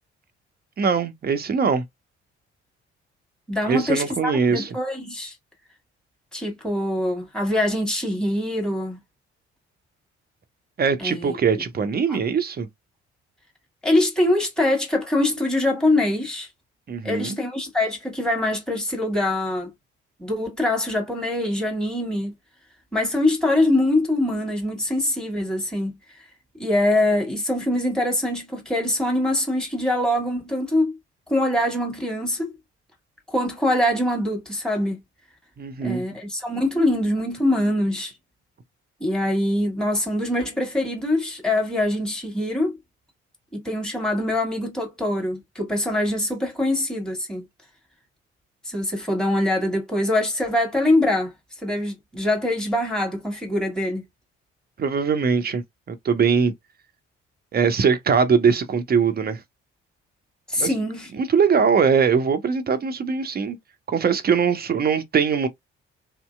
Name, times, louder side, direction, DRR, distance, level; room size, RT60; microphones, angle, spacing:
voice 1, 0.8-1.8 3.7-4.8 10.8-12.7 16.9-17.4 35.6-36.0 54.8-56.5 57.5-59.4 60.6-60.7 61.1-63.6 63.9-65.5, right 6 dB, 30° right, 0.7 m, -21 dB
voice 2, 3.5-5.3 6.3-9.0 11.0-11.6 12.1-12.2 13.8-16.5 17.0-19.7 20.2-22.3 22.9-26.2 26.6-31.0 31.3-32.5 33.3-35.0 35.8-38.1 39.0-42.7 43.5-47.4 48.6-51.3 51.6-54.0 60.5-61.1, left 1 dB, ahead, 1.5 m, -23 dB
2.8 x 2.7 x 2.2 m
figure-of-eight pair, 45°, 33 cm